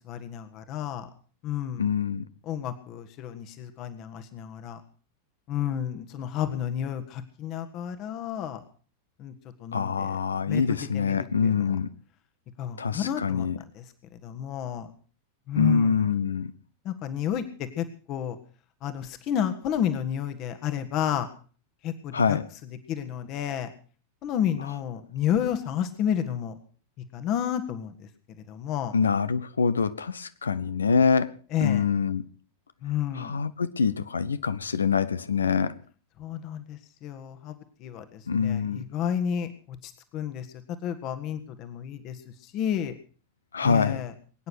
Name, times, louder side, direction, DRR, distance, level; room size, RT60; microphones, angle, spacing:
voice 1, 0.1-1.1 1.4-1.8 2.4-4.8 5.5-8.6 9.2-9.3 9.6-10.2 10.5-11.6 12.6-13.5 13.7-13.8 14.2-14.9 15.5-16.1 16.8-17.4 17.8-18.4 18.8-21.3 21.8-22.4 22.9-23.7 24.2-26.6 27.1-28.1 28.5-28.9 31.5-31.8 32.8-33.4 36.2-40.5 40.8-42.2 42.4-42.9 43.6-44.1, left 9 dB, 40° left, 1.6 m, -31 dB
voice 2, 1.8-2.2 9.7-11.9 12.8-13.6 15.5-16.5 22.1-22.5 28.9-31.3 31.6-32.2 33.1-35.8 38.3-38.8 43.5-44.0, left 5 dB, 70° left, 0.9 m, -25 dB
22.0 x 9.7 x 6.3 m
figure-of-eight pair, 90°, 0 cm